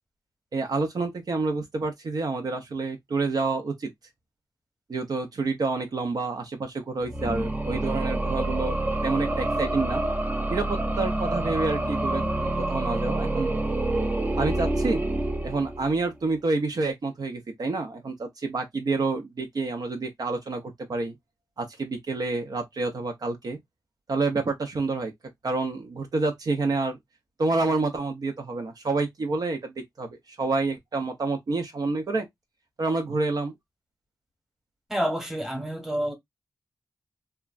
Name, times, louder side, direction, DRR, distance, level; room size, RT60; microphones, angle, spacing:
voice 1, 0.5-3.9 4.9-8.8 9.0-10.0 10.5-12.2 12.6-13.5 14.4-15.0 15.4-21.1 21.6-23.6 24.1-25.1 25.4-27.0 27.4-29.7 30.0-32.3 32.8-33.5, right 3 dB, 60° right, 0.7 m, -28 dB
sound 1, 7.0-16.1, right 1 dB, 20° right, 0.5 m, -27 dB
voice 2, 34.9-36.1, equal, 5° right, 1.1 m, -28 dB
2.9 x 2.3 x 2.3 m
cardioid pair, 70°, 8 cm